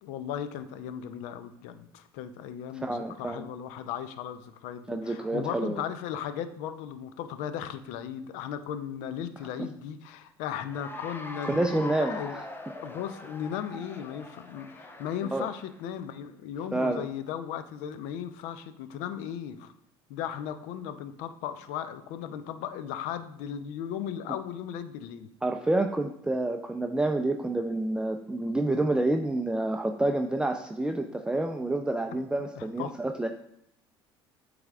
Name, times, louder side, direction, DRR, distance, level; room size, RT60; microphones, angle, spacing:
voice 1, 0.0-12.4 12.8-19.7 20.1-25.3 32.6-33.0, left 9 dB, 65° left, 11 dB, 0.6 m, -36 dB
voice 2, 2.7-3.4 4.9-5.8 11.4-12.2 15.3-15.5 16.7-17.0 25.4-33.3, right 2 dB, 5° right, 5 dB, 0.4 m, -28 dB
Cheering / Applause, 10.6-15.8, left 2 dB, 15° left, 0.8 m, -42 dB
8.0 x 3.4 x 3.6 m, 0.72 s
hypercardioid pair, 65°, 13 cm